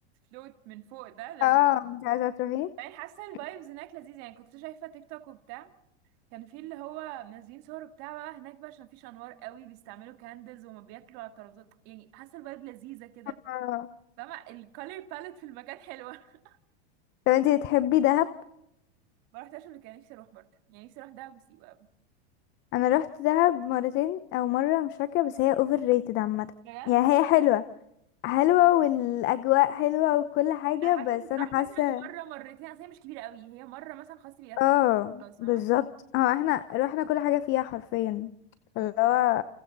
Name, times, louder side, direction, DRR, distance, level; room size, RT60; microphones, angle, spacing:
voice 1, 0.3-1.6 2.8-5.7 6.3-13.4 14.2-16.6 19.3-21.9 26.6-27.0 30.8-34.6 35.2-35.6 38.8-38.9, right 15 dB, 45° right, 2.0 m, -44 dB
voice 2, 1.4-2.7 13.5-13.9 17.3-18.3 22.7-26.5 26.9-27.6 28.2-32.1 34.6-35.8 36.1-38.3 38.8-39.4, left 15 dB, 35° left, 0.8 m, -24 dB
29.5 x 28.5 x 4.1 m
supercardioid pair, 140°, 33 cm